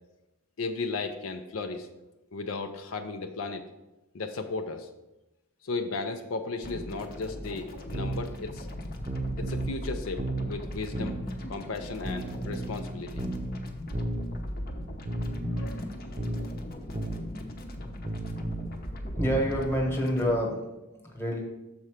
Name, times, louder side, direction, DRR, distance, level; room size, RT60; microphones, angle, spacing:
voice 1, 0.6-1.9 2.3-3.7 4.1-4.9 5.6-8.7 9.4-11.2 11.5-13.2 15.5-16.3, left 3 dB, 70° left, 6 dB, 0.5 m, -35 dB
sound 1, 6.6-20.4, left 1 dB, 45° left, 0.8 m, -39 dB
sound 2, 7.9-8.3 9.0-9.8 10.2-10.5 10.9-11.3 12.0-12.8 13.2-13.5 13.9-14.3 15.1-15.7 16.2-16.5 16.9-17.2 18.0-18.7 19.2-19.5, right 2 dB, 25° right, 0.6 m, -33 dB
voice 2, 19.0-21.4, equal, 10° left, 0 dB, 1.2 m, -28 dB
6.9 x 4.3 x 4.9 m, 0.99 s
head